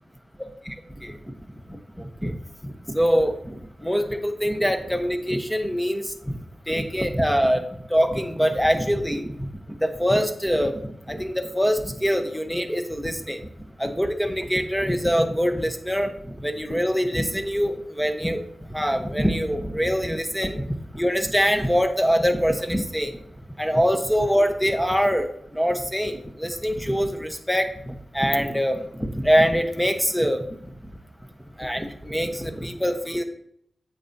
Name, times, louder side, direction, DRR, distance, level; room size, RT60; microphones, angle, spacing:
voice 1, 2.9-3.3 3.8-6.0 6.7-7.6 7.9-9.3 9.8-10.7 11.1-13.4 13.8-16.1 16.4-18.4 18.7-20.6 21.0-23.1 23.6-25.3 25.5-30.4 31.6-33.2, equal, 5° left, 6 dB, 1.1 m, -23 dB
8.7 x 7.1 x 2.9 m, 0.70 s
cardioid pair, 55°, 0 cm